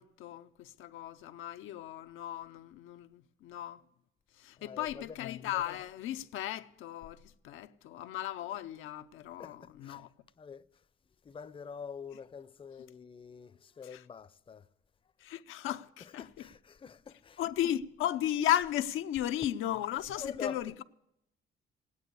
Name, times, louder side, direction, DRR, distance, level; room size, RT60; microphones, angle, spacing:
voice 1, 0.0-3.8 4.4-10.1 13.8-14.0 15.2-16.5 17.4-20.8, left 12 dB, 90° left, 0.6 m, -35 dB
voice 2, 4.6-5.2 9.4-10.0 10.4-10.7 11.2-14.7 16.0-17.5 20.1-20.8, left 6 dB, 25° left, 0.5 m, -46 dB
16.5 x 9.7 x 8.2 m
cardioid pair, 90°, 20 cm